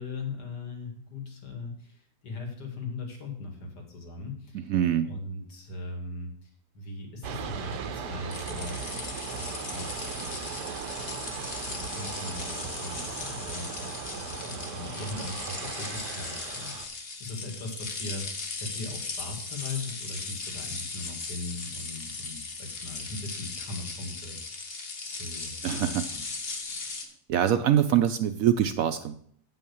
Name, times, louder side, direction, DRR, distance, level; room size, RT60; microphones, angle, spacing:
voice 1, 0.0-4.7 5.0-6.5 6.7-8.8 9.2-10.7 11.2-24.8 25.0-26.2, left 3 dB, 75° left, 2 dB, 2.5 m, -40 dB
voice 2, 4.7-5.1 25.6-26.0 27.3-29.1, right 10 dB, 70° right, 10 dB, 0.9 m, -24 dB
sound 1, 7.2-16.9, right 6 dB, 90° right, 1.5 m, -38 dB
sound 2, 8.3-27.0, left 4 dB, 40° left, 1.2 m, -38 dB
8.3 x 5.7 x 6.9 m, 0.62 s
omnidirectional pair, 1.8 m